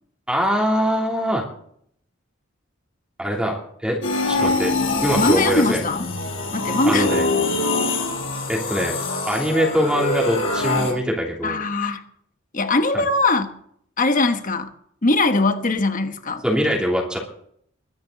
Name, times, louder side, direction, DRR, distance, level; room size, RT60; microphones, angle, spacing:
voice 1, 0.3-1.4 3.2-4.0 4.3-4.7 5.0-5.8 6.8-7.3 8.5-8.9 9.3-11.6 12.9-13.0 16.4-17.2, equal, 5° right, 3.0 m, -22 dB
sound 1, 4.0-10.9, left 2 dB, 85° left, 5.2 m, -24 dB
voice 2, 5.1-6.1 6.5-7.1 11.4-12.0 12.5-13.6 14.0-14.7 15.0-16.4, left 2 dB, 40° left, 1.3 m, -21 dB
22.0 x 10.0 x 4.0 m
head